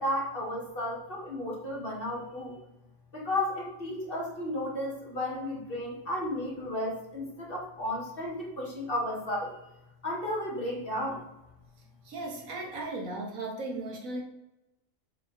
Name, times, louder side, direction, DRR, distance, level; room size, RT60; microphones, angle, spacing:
voice 1, 0.0-2.6 3.1-9.5 10.0-11.2, left 1 dB, 40° left, -3 dB, 1.8 m, -33 dB
voice 2, 12.0-14.2, right 2 dB, 75° right, 1 dB, 1.6 m, -36 dB
7.1 x 3.2 x 4.5 m, 0.92 s
omnidirectional pair, 1.4 m